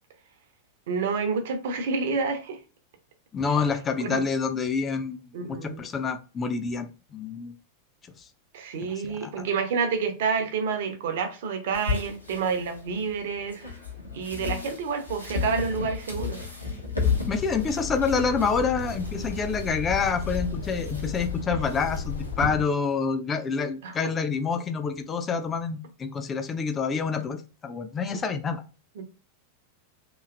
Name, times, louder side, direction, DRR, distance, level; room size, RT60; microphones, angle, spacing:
voice 1, 0.9-2.6 4.0-4.2 5.3-5.8 8.5-13.6 14.1-16.4 23.8-23.9 29.0-29.1, right 5 dB, 55° right, 0.7 m, -28 dB
voice 2, 3.3-7.5 8.2-8.3 8.8-9.4 17.2-27.4 27.6-28.6, left 5 dB, 20° left, 0.4 m, -27 dB
sound 1, 11.7-22.5, left 5 dB, 85° left, 0.9 m, -34 dB
Truck, 17.0-22.6, left 4 dB, 65° left, 0.6 m, -34 dB
3.0 x 2.7 x 2.4 m
figure-of-eight pair, 90°, 0 cm